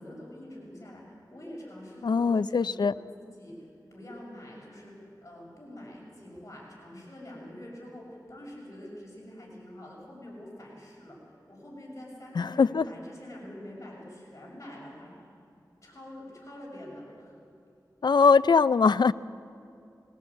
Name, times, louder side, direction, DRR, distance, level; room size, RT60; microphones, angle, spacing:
voice 1, 0.0-15.1 15.8-17.4, left 1 dB, 45° left, -3 dB, 6.7 m, -46 dB
voice 2, 2.0-2.9 12.4-12.8 18.0-19.1, left 5 dB, 80° left, 16 dB, 0.4 m, -21 dB
21.0 x 17.5 x 8.5 m, 2.6 s
wide cardioid pair, 65°, 7 cm